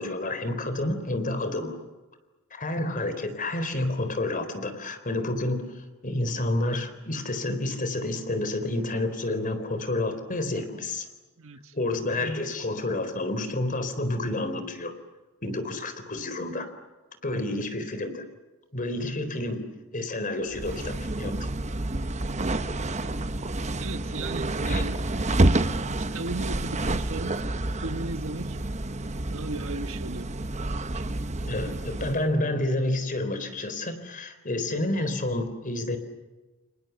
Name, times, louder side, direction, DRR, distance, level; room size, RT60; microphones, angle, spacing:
voice 1, 0.0-1.8 2.5-11.1 11.7-14.9 15.4-16.7 17.2-18.2 18.7-19.7 19.9-21.4 24.7-24.8 31.5-36.0, left 2 dB, 40° left, 10 dB, 4.0 m, -29 dB
voice 2, 11.4-11.7 23.8-25.0 26.0-27.4 27.8-28.6 29.3-30.3, right 3 dB, 65° right, 9 dB, 1.5 m, -36 dB
sound 1, 20.5-32.3, right 2 dB, 30° right, 1.0 m, -29 dB
29.0 x 28.0 x 7.0 m, 1.2 s
head